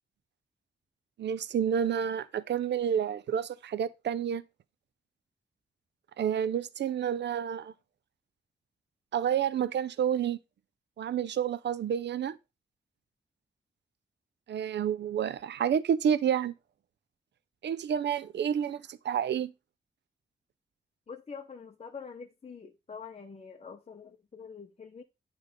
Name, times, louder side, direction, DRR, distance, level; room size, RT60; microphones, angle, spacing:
voice 1, 1.2-4.4 6.2-7.7 9.1-10.4 11.0-12.4 14.5-16.5 17.6-19.5, right 8 dB, 90° right, 0.5 m, -29 dB
voice 2, 21.1-25.0, left 5 dB, 35° left, 0.8 m, -45 dB
9.7 x 3.3 x 5.1 m
wide cardioid pair, 140°, 17 cm